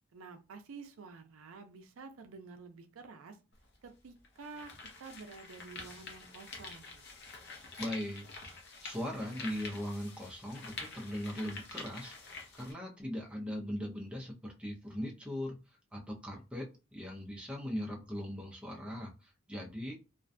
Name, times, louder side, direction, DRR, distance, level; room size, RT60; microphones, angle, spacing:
voice 1, 0.1-3.4 3.8-4.7 5.0-7.1, right 4 dB, 85° right, 7 dB, 0.4 m, -50 dB
sound 1, 3.5-3.6 4.2-12.7, left 4 dB, 55° left, 0.6 m, -47 dB
voice 2, 7.8-8.2 8.8-12.1 12.5-15.6 15.9-19.9, equal, 5° right, -1 dB, 0.4 m, -39 dB
2.4 x 2.2 x 2.5 m, 0.30 s
head